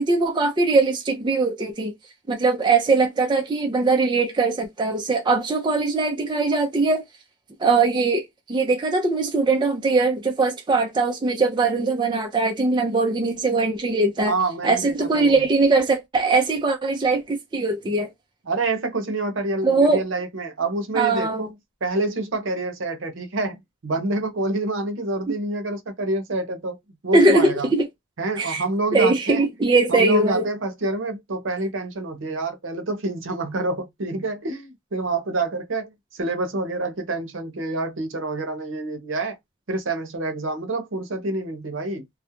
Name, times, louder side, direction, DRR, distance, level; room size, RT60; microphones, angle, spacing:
voice 1, 0.0-1.9 2.3-7.0 7.6-14.3 14.6-18.1 19.6-20.0 20.9-21.5 27.1-27.9 28.4-28.6 28.9-30.5, right 3 dB, 20° right, 0.4 m, -21 dB
voice 2, 14.3-15.4 18.5-26.8 27.0-27.7 28.2-29.5 29.9-39.4 39.7-42.0, right 2 dB, 70° right, 0.7 m, -27 dB
2.3 x 2.0 x 2.9 m
head